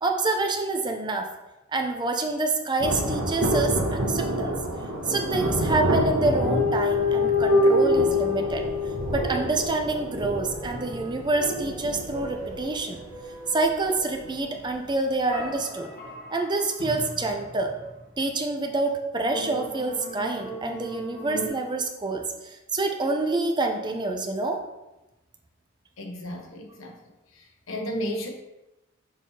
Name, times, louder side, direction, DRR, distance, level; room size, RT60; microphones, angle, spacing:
voice 1, 0.0-1.3 1.7-4.6 5.1-8.6 9.1-13.0 13.5-15.9 16.3-17.7 18.2-24.6, right 3 dB, 20° right, 4 dB, 0.5 m, -27 dB
Thunder, 2.8-14.8 15.0-15.1, right 1 dB, 80° right, 1.1 m, -29 dB
sound 1, 5.1-5.8 6.4-10.9 11.4-14.7 15.3-17.9 19.3-21.5, left 2 dB, 50° left, 2.0 m, -28 dB
voice 2, 26.0-27.0 27.4-28.3, equal, 75° left, 2 dB, 1.0 m, -33 dB
6.4 x 5.5 x 2.8 m, 0.99 s
head